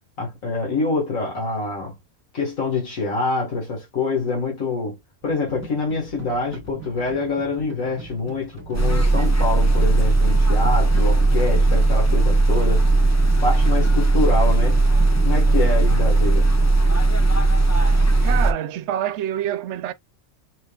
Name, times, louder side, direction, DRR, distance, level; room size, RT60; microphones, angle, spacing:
voice 1, 0.2-2.0 2.3-5.0 5.2-13.1 13.4-14.8 15.2-16.5, left 3 dB, 80° left, 2.0 m, -25 dB
sound 1, 5.2-16.2, right 3 dB, 10° right, 1.3 m, -40 dB
sound 2, 8.7-18.5, right 2 dB, 20° left, 0.5 m, -17 dB
voice 2, 18.2-19.9, right 11 dB, 65° right, 0.8 m, -27 dB
5.4 x 3.6 x 2.3 m
omnidirectional pair, 1.4 m